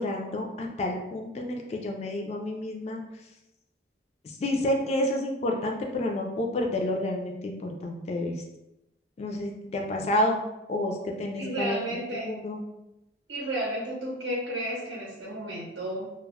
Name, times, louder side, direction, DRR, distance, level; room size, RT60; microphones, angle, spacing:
voice 1, 0.0-3.0 4.4-8.4 9.2-10.4 10.7-11.8 12.1-12.6, left 1 dB, 35° left, 2 dB, 0.3 m, -29 dB
voice 2, 11.4-12.3 13.3-16.1, right 1 dB, 85° right, -4 dB, 0.6 m, -32 dB
2.2 x 2.0 x 3.4 m, 0.91 s
head